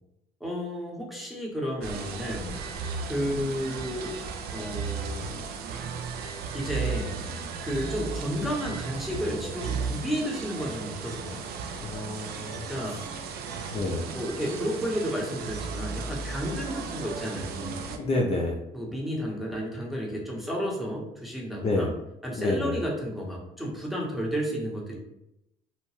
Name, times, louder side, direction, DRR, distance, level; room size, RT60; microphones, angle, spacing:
voice 1, 0.4-2.6 3.1-4.1 4.5-5.4 6.5-7.2 7.6-11.4 12.5-13.0 14.1-17.8 18.7-21.9 22.2-25.0, equal, ahead, -4 dB, 0.8 m, -32 dB
sound 1, 1.8-18.0, right 5 dB, 70° right, 0.4 m, -35 dB
voice 2, 11.8-13.0 13.7-14.1 17.9-18.6 21.6-21.9 22.4-22.8, left 2 dB, 35° left, -1 dB, 0.4 m, -29 dB
2.8 x 2.1 x 3.1 m, 0.85 s
cardioid pair, 110°, 17 cm